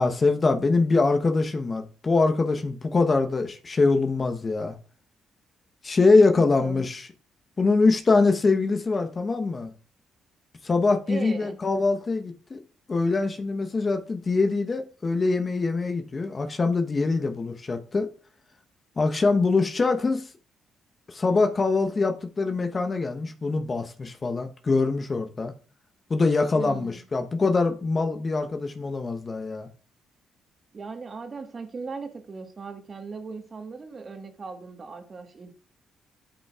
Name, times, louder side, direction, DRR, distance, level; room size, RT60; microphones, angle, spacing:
voice 1, 0.0-4.8 5.8-7.1 7.6-9.7 10.6-12.6 12.9-18.1 19.0-20.3 21.1-25.5 26.1-29.7, left 3 dB, 40° left, 1.0 m, -23 dB
voice 2, 6.3-6.8 11.1-11.6 26.5-27.0 30.7-35.5, right 4 dB, 45° right, 1.5 m, -38 dB
13.0 x 5.4 x 2.4 m
supercardioid pair, 55°, 0 cm